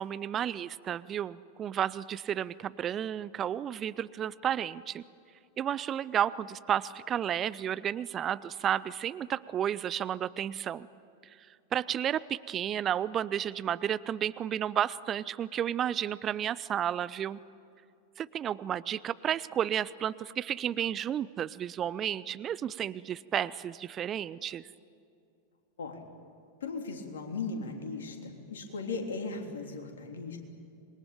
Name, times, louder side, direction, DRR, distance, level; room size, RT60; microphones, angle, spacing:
voice 1, 0.0-5.0 5.6-10.9 11.2-11.4 11.7-17.4 18.2-24.7, right 10 dB, 25° right, 18 dB, 0.5 m, -32 dB
voice 2, 26.6-30.4, left 4 dB, 65° left, 4 dB, 3.4 m, -37 dB
26.5 x 22.0 x 9.0 m, 2.6 s
figure-of-eight pair, 90°, 0 cm